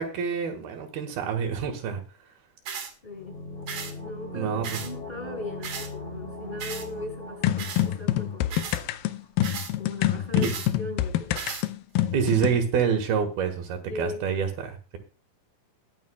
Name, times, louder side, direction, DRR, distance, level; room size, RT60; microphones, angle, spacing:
voice 1, 0.0-2.0 4.3-4.8 10.4-10.5 12.1-15.0, right 7 dB, 90° right, 4 dB, 3.6 m, -27 dB
sound 1, 2.7-2.9 3.7-3.9 4.6-4.9 5.6-5.9 6.6-6.9 7.6-7.9 8.5-8.8 9.4-9.7 10.4-10.7 11.4-11.7, right 6 dB, 55° right, 2.7 m, -35 dB
voice 2, 3.0-3.4 4.0-8.7 9.8-11.4 13.8-14.3, left 2 dB, 10° left, 1 dB, 6.3 m, -38 dB
sound 2, 3.1-8.8 9.1-9.2, left 2 dB, 55° left, 8.0 m, -40 dB
sound 3, 7.4-12.6, left 13 dB, 80° left, 2.3 m, -26 dB
21.5 x 7.5 x 2.3 m, 0.32 s
omnidirectional pair, 4.2 m